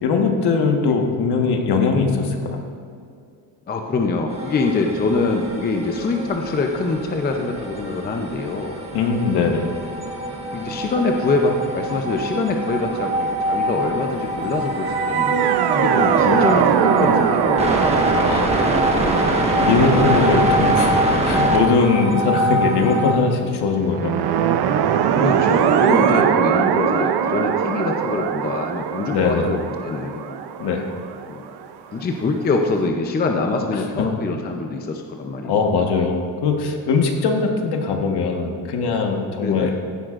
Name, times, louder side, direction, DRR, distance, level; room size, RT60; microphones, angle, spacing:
voice 1, 0.0-2.6 8.9-9.7 18.2-18.6 19.6-24.1 26.2-26.3 29.1-29.5 30.6-30.9 35.4-39.7, left 4 dB, 60° left, 3 dB, 1.4 m, -20 dB
voice 2, 3.7-8.8 10.5-17.8 18.3-18.8 25.2-30.4 31.3-31.4 31.9-35.5 35.7-35.9 39.4-39.8, left 3 dB, 20° left, 3 dB, 0.6 m, -24 dB
sound 1, 4.3-23.1, right 1 dB, 15° right, 1.2 m, -23 dB
sound 2, 14.7-22.0 23.9-31.6, right 8 dB, 60° right, 0.7 m, -21 dB
15.5 x 10.5 x 2.5 m, 2.2 s
cardioid pair, 155°, 44 cm